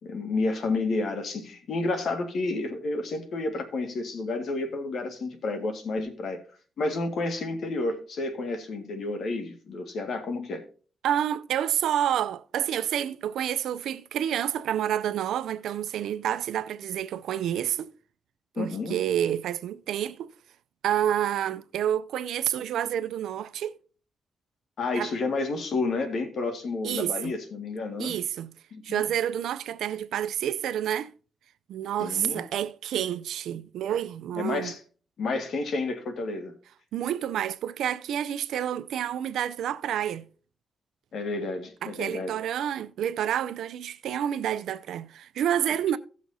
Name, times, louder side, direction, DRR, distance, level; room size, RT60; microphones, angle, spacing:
voice 1, 0.0-6.4 6.8-10.6 18.6-19.0 24.8-28.1 28.7-29.0 32.0-32.4 34.4-34.8 35.2-36.5 41.1-42.4, left 3 dB, 70° left, 1.8 m, -30 dB
voice 2, 11.0-17.9 18.6-20.3 20.8-23.7 24.9-25.1 26.8-27.3 28.0-28.5 28.8-31.1 31.7-34.7 36.9-40.3 41.8-46.0, right 10 dB, 90° right, 0.4 m, -29 dB
16.5 x 6.3 x 2.7 m
cardioid pair, 75°, 0 cm